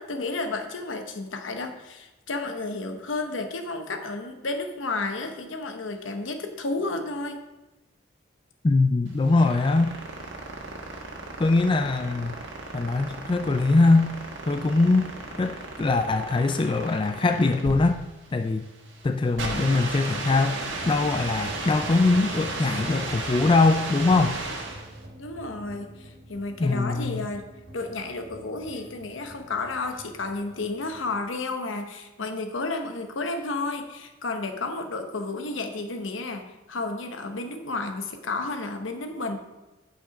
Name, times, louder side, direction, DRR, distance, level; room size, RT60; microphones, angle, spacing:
voice 1, 0.0-7.4 25.2-27.5 27.7-39.4, left 3 dB, 80° left, 6 dB, 1.0 m, -32 dB
voice 2, 8.6-9.9 11.4-12.3 12.7-14.1 14.5-15.1 15.4-18.0 18.3-18.6 19.0-24.4 26.6-27.3, left 3 dB, 25° left, 7 dB, 0.3 m, -22 dB
sound 1, 9.1-25.0, right 3 dB, 70° right, 1.5 m, -35 dB
sound 2, 14.7-17.0, equal, 5° left, 2.0 m, -50 dB
sound 3, 20.8-31.1, equal, 55° right, 2.3 m, -45 dB
8.8 x 5.7 x 4.8 m, 1.1 s
head